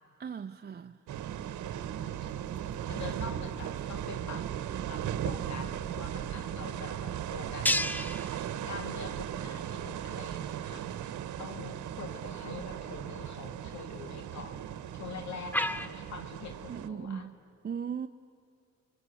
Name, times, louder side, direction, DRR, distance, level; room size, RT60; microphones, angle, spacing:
voice 1, 0.2-1.0 16.7-17.3 17.6-18.1, right 7 dB, 35° right, 6 dB, 0.8 m, -37 dB
sound 1, 1.1-15.9, left 1 dB, 5° left, 0.8 m, -40 dB
sound 2, 1.1-16.9, right 10 dB, 75° right, 1.2 m, -37 dB
voice 2, 2.0-4.5 4.9-7.7 8.7-11.1 11.4-14.7 14.9-17.3, left 5 dB, 65° left, 7 dB, 2.2 m, -45 dB
29.5 x 23.0 x 8.5 m, 2.5 s
cardioid pair, 90°, 30 cm